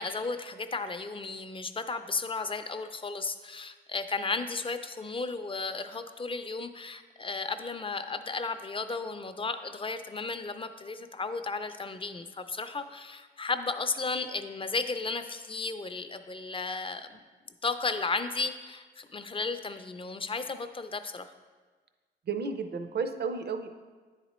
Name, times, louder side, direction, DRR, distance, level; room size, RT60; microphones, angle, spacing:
voice 1, 0.0-17.1 17.6-21.3, left 4 dB, 30° left, 9 dB, 0.4 m, -34 dB
voice 2, 22.3-23.7, right 5 dB, 65° right, 8 dB, 0.5 m, -32 dB
9.8 x 4.1 x 3.0 m, 1.4 s
cardioid pair, 75°, 19 cm